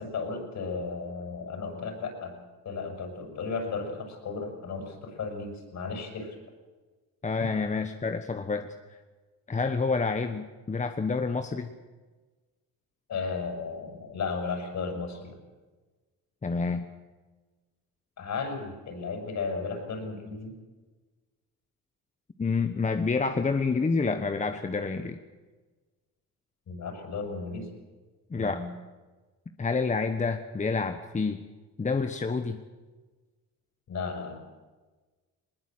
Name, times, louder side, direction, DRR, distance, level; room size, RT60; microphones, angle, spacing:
voice 1, 0.0-2.4 2.7-6.4 13.1-15.4 18.2-20.6 26.7-27.7 28.3-28.7 33.9-34.3, left 4 dB, 55° left, 4 dB, 6.9 m, -34 dB
voice 2, 7.2-8.7 9.5-11.7 16.4-16.9 22.4-25.2 28.3-28.7 29.6-31.4 31.8-32.6, left 4 dB, 20° left, 7 dB, 1.2 m, -28 dB
20.5 x 20.0 x 8.0 m, 1.3 s
cardioid pair, 100°, 34 cm